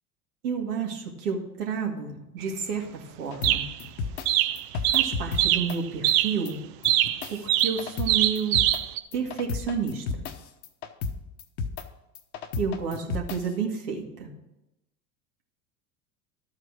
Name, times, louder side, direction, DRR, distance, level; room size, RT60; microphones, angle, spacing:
voice 1, 0.4-3.6 4.9-6.6 7.3-8.6 9.1-10.3 12.6-14.3, right 6 dB, 70° right, 0 dB, 2.3 m, -30 dB
sound 1, 2.4-2.5 3.4-3.9 4.3-5.8 6.0-6.4 6.8-9.0, right 13 dB, 45° right, 0.7 m, -23 dB
sound 2, 3.3-4.3 4.6-5.4 5.7-5.8 6.1-6.2 6.5-6.6 6.8-8.1 8.4-8.8 9.1-10.3 10.6-11.1 11.4-11.8 12.2-13.4, left 5 dB, 65° left, 1.1 m, -32 dB
12.0 x 4.9 x 6.1 m, 0.93 s
hypercardioid pair, 90°, 48 cm